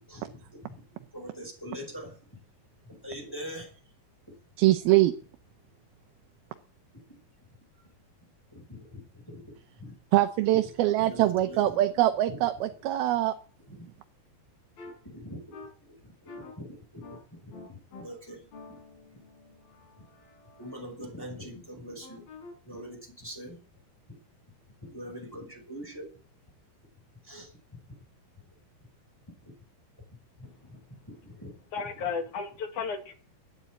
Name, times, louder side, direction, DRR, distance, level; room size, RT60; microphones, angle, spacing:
voice 1, 0.1-0.8 1.1-2.4 2.8-3.7 8.5-9.5 9.8-9.9 11.0-11.8 12.3-12.4 13.7-13.8 15.0-15.4 16.2-17.1 17.4-18.5 20.0-20.1 20.6-22.2 22.6-23.6 24.8-26.1 27.2-27.8 29.4-29.5 30.4-30.8 31.1-31.5, equal, 5° left, 1 dB, 5.3 m, -43 dB
voice 2, 4.6-5.1 10.1-13.4, right 15 dB, 85° right, 7 dB, 2.8 m, -23 dB
sound 1, 14.8-14.9 15.5-15.7 16.3-16.5 17.0-17.2 17.5-18.0 18.5-20.8 22.0-22.5, left 3 dB, 80° left, 6.6 m, -47 dB
voice 3, 31.7-33.1, left 5 dB, 60° left, 5 dB, 3.2 m, -33 dB
12.0 x 9.6 x 8.5 m, 0.40 s
omnidirectional pair, 4.2 m